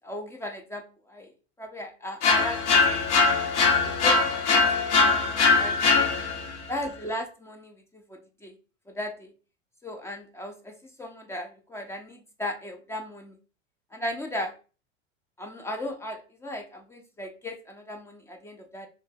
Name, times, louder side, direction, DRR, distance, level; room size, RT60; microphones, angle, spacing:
voice 1, 0.0-1.3 1.6-3.4 3.8-4.4 5.6-5.9 6.7-8.6 8.9-9.3 9.8-13.3 13.9-14.5 15.4-18.9, left 1 dB, 10° left, 4 dB, 0.4 m, -36 dB
sound 1, 2.2-6.6, left 4 dB, 65° left, 0.8 m, -22 dB
2.9 x 2.6 x 3.3 m, 0.36 s
hypercardioid pair, 90°, 38 cm